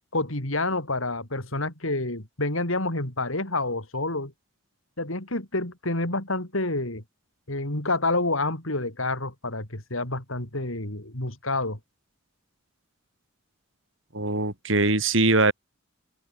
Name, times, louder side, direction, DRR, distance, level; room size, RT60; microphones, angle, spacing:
voice 1, 0.1-4.3 5.0-7.0 7.5-11.8, left 2 dB, 75° left, 5.1 m, -28 dB
voice 2, 14.1-15.5, right 2 dB, 65° right, 3.6 m, -22 dB
head